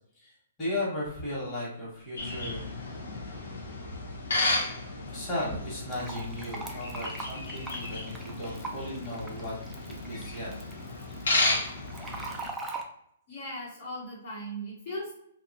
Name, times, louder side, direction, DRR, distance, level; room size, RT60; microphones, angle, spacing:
voice 1, 0.6-2.7 5.1-9.5 9.8-10.5, left 1 dB, 20° left, -7 dB, 1.2 m, -35 dB
sound 1, 2.2-12.5, left 2 dB, 80° left, 0.7 m, -33 dB
Fill (with liquid), 5.9-12.8, right 2 dB, 5° right, 0.4 m, -42 dB
voice 2, 13.3-15.1, equal, 50° left, -5 dB, 1.1 m, -38 dB
2.7 x 2.3 x 2.6 m, 0.73 s
hypercardioid pair, 150°, 0 cm